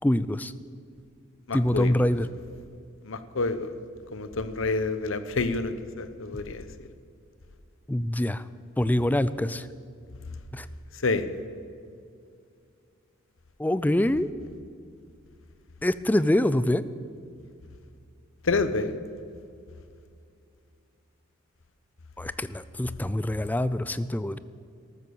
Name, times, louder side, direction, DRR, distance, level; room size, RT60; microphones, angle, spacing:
voice 1, 0.0-0.5 1.5-2.3 7.9-8.4 8.8-9.7 10.5-10.7 13.6-14.3 15.8-16.8 22.2-24.4, left 1 dB, 10° left, 15 dB, 0.4 m, -25 dB
voice 2, 1.5-2.1 3.0-3.7 4.1-6.7 11.0-11.2 18.4-19.0, left 3 dB, 65° left, 11 dB, 0.9 m, -28 dB
13.5 x 13.0 x 7.1 m, 2.4 s
head